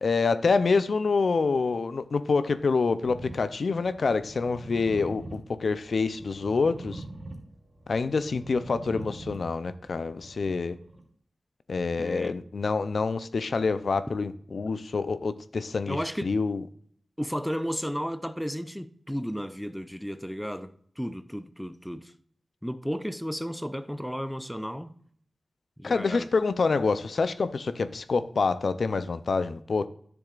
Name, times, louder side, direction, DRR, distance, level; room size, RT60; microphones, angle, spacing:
voice 1, 0.0-7.0 7.9-10.7 11.7-16.6 25.8-29.9, left 4 dB, 70° left, 0.5 m, -27 dB
sound 1, 3.0-11.0, right 2 dB, 35° right, 2.6 m, -44 dB
voice 2, 12.0-12.4 15.9-16.3 17.2-22.1 22.6-24.9 25.8-26.3, equal, ahead, 0.5 m, -33 dB
10.0 x 7.0 x 2.4 m
cardioid pair, 60°, 0 cm